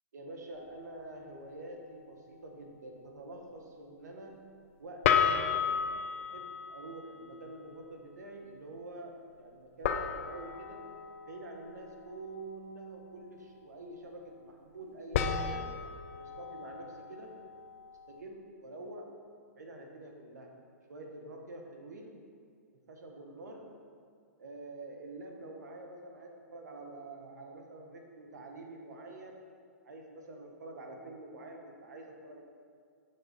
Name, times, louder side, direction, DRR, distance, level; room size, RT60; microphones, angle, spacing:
voice 1, 0.1-4.4 4.8-5.9 6.3-10.9 11.3-15.7 16.2-17.3 18.1-19.1 19.6-20.5 20.9-22.2 22.9-23.7 24.4-29.4 29.8-32.4, right 2 dB, 85° right, 2 dB, 1.4 m, -47 dB
sound 1, 0.5-0.8 5.0-7.4 9.8-12.3 15.1-18.2, left 7 dB, 50° left, 0.6 m, -33 dB
7.4 x 6.5 x 4.4 m, 2.1 s
hypercardioid pair, 150°, 9 cm